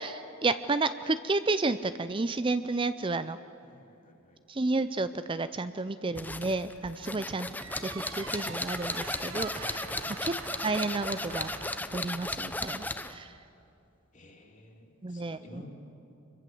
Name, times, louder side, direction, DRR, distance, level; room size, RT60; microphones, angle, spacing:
voice 1, 0.0-3.4 4.5-7.5 7.8-9.9 10.2-10.3 10.6-11.5 11.9-13.3 15.0-15.4, right 3 dB, 25° right, 11 dB, 0.5 m, -31 dB
voice 2, 3.6-4.4 7.0-7.2 9.8-10.2 14.1-15.7, left 1 dB, 35° left, 1 dB, 3.1 m, -54 dB
sound 1, 6.2-13.2, left 2 dB, 10° left, 0.8 m, -35 dB
sound 2, 7.5-12.0, right 6 dB, 80° right, 1.1 m, -45 dB
26.0 x 23.0 x 7.8 m, 2.8 s
head